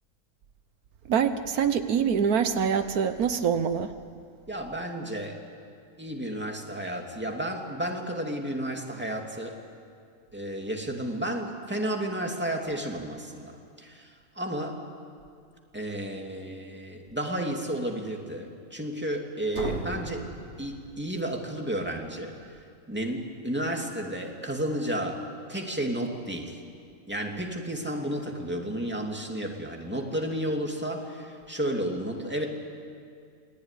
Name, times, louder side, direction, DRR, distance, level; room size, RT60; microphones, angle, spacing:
voice 1, 1.1-3.9, right 7 dB, 80° right, 10 dB, 1.4 m, -25 dB
voice 2, 4.5-5.4 6.0-9.6 10.3-14.8 15.7-20.3 20.6-22.3 22.9-25.2 25.5-26.6 27.1-32.5, right 1 dB, 5° right, 1 dB, 2.6 m, -32 dB
sound 1, 19.5-21.4, right 1 dB, 45° right, 3.1 m, -37 dB
27.5 x 19.5 x 10.0 m, 2.3 s
omnidirectional pair, 1.6 m